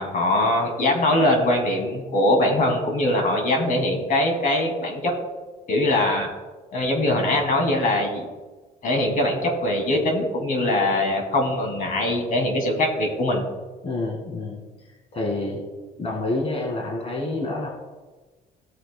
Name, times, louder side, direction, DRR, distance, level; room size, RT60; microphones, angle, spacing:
voice 1, 0.0-5.1 5.7-6.3 6.7-8.3 8.8-13.4, left 1 dB, 50° left, 2 dB, 2.4 m, -22 dB
voice 2, 13.8-15.6 16.0-17.7, left 2 dB, 35° left, -1 dB, 1.9 m, -28 dB
15.5 x 7.6 x 2.2 m, 1.2 s
cardioid pair, 110°, 17 cm